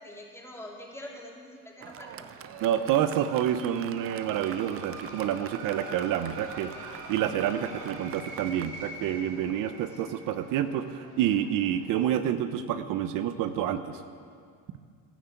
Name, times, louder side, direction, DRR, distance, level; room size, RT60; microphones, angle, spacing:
voice 1, 0.0-2.3 9.9-10.0, left 1 dB, 5° left, -2 dB, 3.4 m, -44 dB
Fireworks, 1.8-8.7, right 10 dB, 40° right, 0.6 m, -44 dB
sound 1, 2.1-12.0, right 2 dB, 85° right, 5.3 m, -45 dB
voice 2, 2.6-6.7 7.1-14.0, right 10 dB, 65° right, 9 dB, 0.8 m, -28 dB
13.0 x 12.5 x 8.3 m, 2.2 s
cardioid pair, 105°, 35 cm